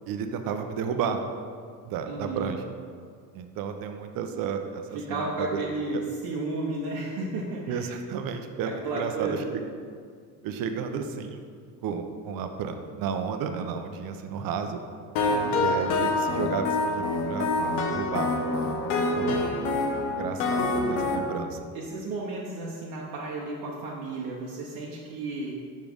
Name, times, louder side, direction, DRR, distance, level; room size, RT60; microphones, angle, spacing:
voice 1, 0.1-1.2 1.8-2.6 3.3-5.0 5.4-5.6 7.7-9.6 10.4-11.4 11.8-14.8 15.5-18.3 18.6-19.3 20.1-21.7, right 6 dB, 55° right, 7 dB, 0.7 m, -32 dB
voice 2, 2.1-2.5 4.9-7.9 8.8-9.5 15.2-15.7 21.7-25.5, right 2 dB, 70° right, -4 dB, 1.0 m, -33 dB
sound 1, 15.2-21.2, left 2 dB, 75° left, 0.9 m, -26 dB
5.2 x 4.6 x 5.3 m, 2.1 s
supercardioid pair, 90°, 41 cm